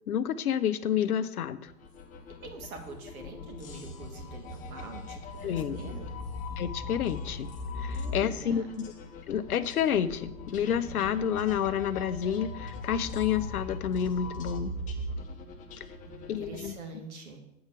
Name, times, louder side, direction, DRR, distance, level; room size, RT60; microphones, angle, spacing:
voice 1, 0.1-1.7 5.4-5.9 6.6-7.5 7.8-8.6 9.3-14.7 16.3-16.7, left 9 dB, 80° left, 12 dB, 0.8 m, -29 dB
sound 1, 1.7-16.7, left 2 dB, 15° left, 0.9 m, -39 dB
voice 2, 2.4-6.1 7.9-8.7 15.4-15.7 16.1-17.4, right 3 dB, 70° right, 3 dB, 2.2 m, -45 dB
8.0 x 4.8 x 6.6 m, 0.82 s
hypercardioid pair, 130°, 44 cm